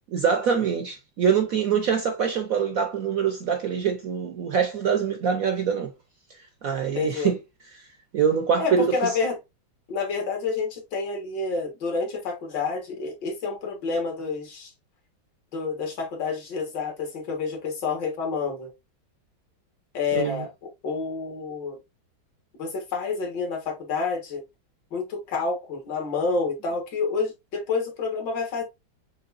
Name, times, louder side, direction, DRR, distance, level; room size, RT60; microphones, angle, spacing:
voice 1, 0.1-5.9 6.6-7.4 7.7-7.8 8.1-9.2 20.1-20.5, right 7 dB, 65° right, 0.8 m, -24 dB
voice 2, 6.9-7.3 8.6-9.4 9.9-14.7 15.5-18.7 19.9-20.5 20.8-21.8 22.6-24.4 24.9-28.6, left 4 dB, 65° left, 2.2 m, -28 dB
6.8 x 3.1 x 2.5 m
omnidirectional pair, 2.2 m